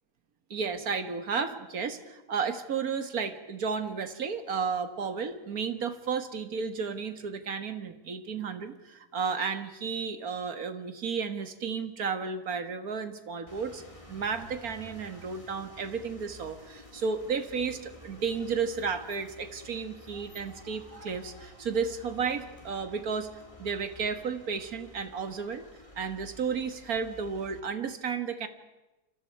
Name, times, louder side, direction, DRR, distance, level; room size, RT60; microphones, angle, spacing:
voice 1, 0.5-13.8 14.1-23.3 23.6-25.6 26.0-28.5, right 5 dB, 60° right, 8 dB, 2.0 m, -33 dB
sound 1, 13.5-27.6, left 1 dB, 20° left, 3.2 m, -51 dB
28.5 x 26.5 x 4.7 m, 1.1 s
omnidirectional pair, 1.7 m